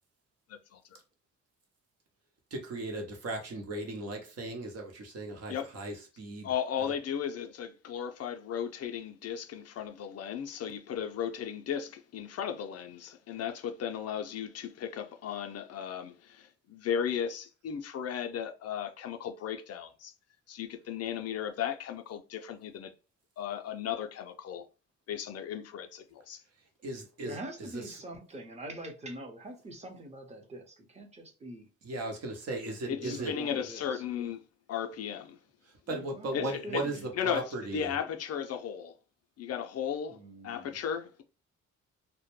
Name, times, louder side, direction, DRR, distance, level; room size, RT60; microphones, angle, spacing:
voice 1, 0.5-1.0 5.5-5.8 6.4-20.1 20.5-22.9 23.4-24.6 25.1-26.4 32.9-34.4 34.7-35.4 36.3-36.8 37.1-38.9 39.4-40.2 40.4-41.2, left 8 dB, 55° left, 0.4 m, -35 dB
voice 2, 2.5-6.5 26.8-27.4 27.7-27.8 31.8-33.3 35.9-37.9, right 2 dB, 55° right, 0.9 m, -37 dB
voice 3, 27.2-31.7 32.8-34.0 35.9-37.1 40.1-40.8, right 1 dB, 20° right, 0.8 m, -44 dB
2.1 x 2.1 x 3.0 m
cardioid pair, 90°, 30 cm